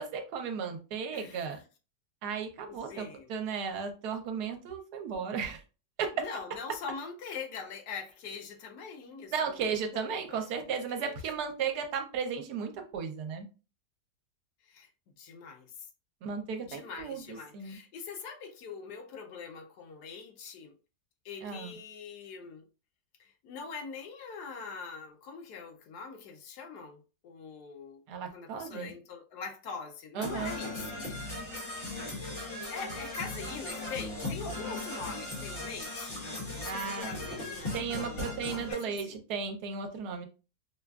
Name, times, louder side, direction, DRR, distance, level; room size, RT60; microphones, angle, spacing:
voice 1, 0.0-1.6 2.2-5.6 6.0-6.1 9.3-13.5 16.2-17.8 21.4-21.7 28.1-28.9 30.1-30.6 36.6-37.1 37.7-40.3, right 6 dB, 75° right, 1.2 m, -35 dB
voice 2, 1.1-1.6 2.7-3.3 6.1-11.2 14.6-14.9 15.2-15.9 16.6-20.8 21.2-22.7 23.2-28.0 28.3-31.1 31.3-31.7 32.7-36.3 36.6-39.2, left 5 dB, 80° left, 1.2 m, -43 dB
Percussion / Brass instrument, 30.2-38.7, left 2 dB, 35° left, 1.5 m, -38 dB
4.9 x 2.3 x 2.3 m
omnidirectional pair, 1.8 m